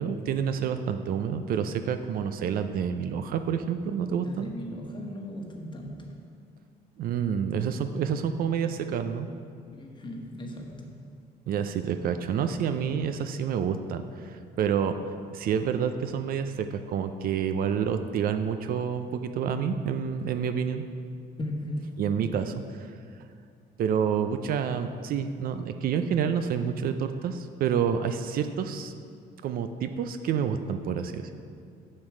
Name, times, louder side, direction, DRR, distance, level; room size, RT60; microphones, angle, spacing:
voice 1, 0.0-4.5 7.0-9.3 11.5-14.9 15.3-20.8 22.0-22.9 23.8-28.9 29.4-31.3, right 7 dB, 60° right, 8 dB, 0.5 m, -28 dB
voice 2, 4.2-6.2 9.7-11.1 21.4-22.0, left 1 dB, 30° left, 1 dB, 1.2 m, -37 dB
7.3 x 6.4 x 4.9 m, 2.3 s
cardioid pair, 110°, 17 cm